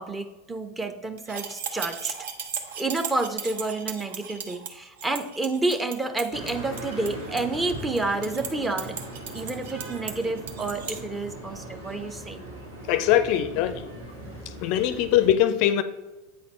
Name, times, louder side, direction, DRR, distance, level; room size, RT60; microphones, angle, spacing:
voice 1, 0.0-2.2 2.8-9.0 9.3-12.4 14.9-15.2, right 2 dB, 10° right, 0.7 m, -29 dB
sound 1, 1.2-11.0, right 7 dB, 60° right, 0.8 m, -37 dB
sound 2, 6.3-15.3, right 1 dB, 85° right, 2.0 m, -39 dB
voice 2, 12.9-13.8 14.6-15.8, left 11 dB, 50° left, 0.4 m, -21 dB
8.5 x 4.1 x 4.3 m
figure-of-eight pair, 85°, 0 cm